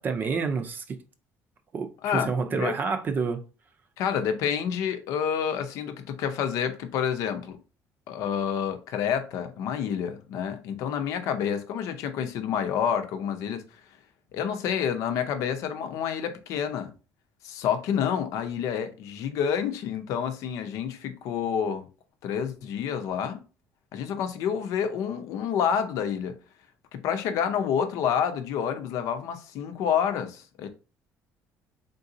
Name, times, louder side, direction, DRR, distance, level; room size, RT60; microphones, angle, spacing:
voice 1, 0.0-1.0 1.7-3.4, right 5 dB, 35° right, 0.6 m, -28 dB
voice 2, 2.0-2.7 4.0-7.6 8.1-13.6 14.3-16.9 17.4-21.9 22.2-23.4 23.9-26.4 26.9-30.7, left 8 dB, 70° left, 0.7 m, -28 dB
3.9 x 3.8 x 2.7 m
cardioid pair, 145°, 6 cm